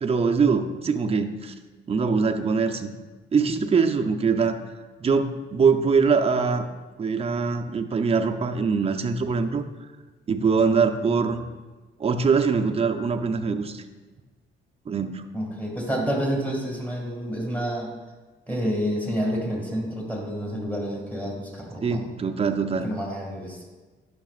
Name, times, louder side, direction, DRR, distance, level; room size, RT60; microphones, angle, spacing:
voice 1, 0.0-1.5 1.9-2.9 3.3-4.6 5.0-6.7 7.0-9.6 10.3-11.4 12.0-13.8 14.9-15.2 21.8-22.9, right 5 dB, 30° right, 5 dB, 0.6 m, -23 dB
voice 2, 15.3-17.9 18.5-22.1 22.8-23.6, equal, 10° left, -1 dB, 2.1 m, -29 dB
12.0 x 6.0 x 2.4 m, 1.3 s
cardioid pair, 90°, 20 cm